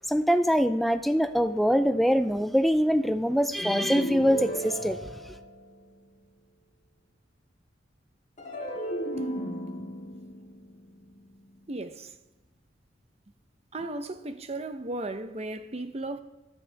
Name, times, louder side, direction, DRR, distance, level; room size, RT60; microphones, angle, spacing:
voice 1, 0.1-5.2, equal, ahead, 0.4 m, -24 dB
sound 1, 3.6-6.0 8.4-11.7, equal, 45° left, 2.5 m, -35 dB
voice 2, 11.7-12.1 13.7-16.2, right 2 dB, 35° right, 0.8 m, -35 dB
15.5 x 10.5 x 3.5 m
head